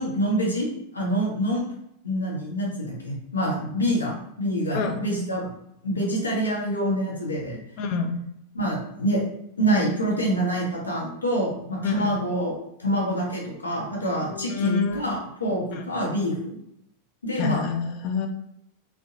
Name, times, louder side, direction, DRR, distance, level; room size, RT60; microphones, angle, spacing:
voice 1, 0.0-1.7 2.0-5.5 5.8-7.6 8.5-9.2 9.6-12.5 12.8-16.6 17.2-17.6, right 1 dB, 75° left, -3 dB, 0.7 m, -26 dB
voice 2, 7.8-8.2 11.8-12.2 14.3-15.0 15.7-15.8 17.4-18.3, left 6 dB, 45° left, 5 dB, 0.3 m, -27 dB
2.6 x 2.1 x 2.5 m, 0.78 s
figure-of-eight pair, 90°, 0 cm